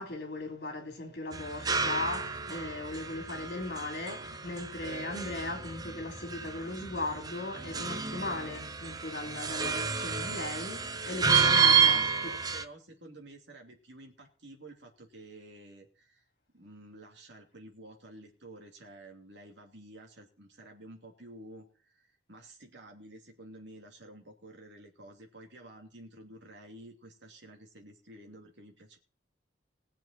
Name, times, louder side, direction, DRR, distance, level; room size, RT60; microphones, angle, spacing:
voice 1, 0.0-12.3, left 2 dB, 55° left, 3.4 m, -38 dB
sound 1, 1.3-12.6, right 6 dB, 20° right, 0.6 m, -30 dB
voice 2, 11.6-16.2 16.5-29.0, right 1 dB, 70° right, 2.7 m, -51 dB
20.5 x 7.4 x 4.3 m
head